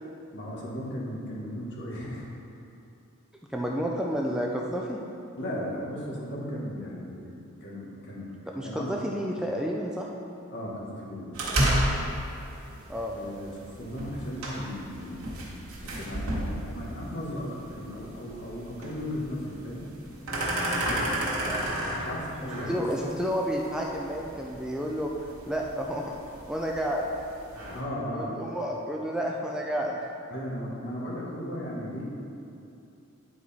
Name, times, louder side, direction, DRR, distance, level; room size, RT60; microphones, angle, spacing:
voice 1, 0.3-2.3 5.4-7.3 7.6-8.3 8.6-9.0 10.5-11.3 13.1-15.5 15.8-19.8 20.8-22.8 27.7-28.5 30.3-32.0, equal, 55° left, -4 dB, 1.6 m, -36 dB
voice 2, 3.5-5.0 8.6-10.1 12.9-13.2 21.5-21.7 22.7-25.1 25.5-26.1 26.5-27.0 28.1-30.0, equal, 5° right, -2 dB, 0.4 m, -30 dB
sound 1, 11.3-27.8, right 1 dB, 90° right, 1.6 m, -33 dB
9.8 x 4.7 x 4.2 m, 2.7 s
head